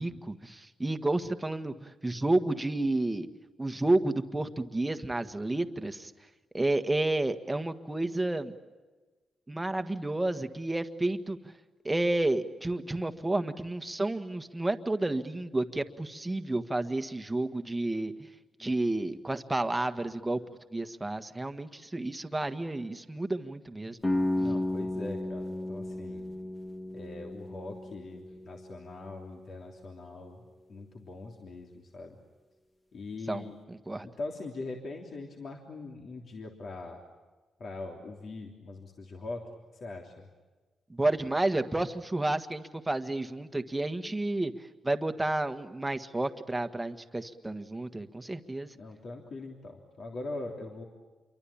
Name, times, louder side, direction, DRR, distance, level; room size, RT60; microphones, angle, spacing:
voice 1, 0.0-3.3 3.6-6.1 6.5-8.5 9.5-11.4 11.8-18.1 18.6-20.4 20.7-24.0 33.3-34.1 40.9-48.7, right 2 dB, 15° right, 8 dB, 1.6 m, -31 dB
sound 1, 24.0-29.8, left 1 dB, 15° left, 1.5 m, -34 dB
voice 2, 24.4-26.3 26.9-30.4 30.7-32.2 32.9-33.6 34.0-37.0 37.6-39.5 39.8-40.3 48.7-50.8, left 3 dB, 55° left, 1 dB, 3.3 m, -42 dB
28.0 x 23.5 x 8.7 m, 1.3 s
cardioid pair, 105°, 0 cm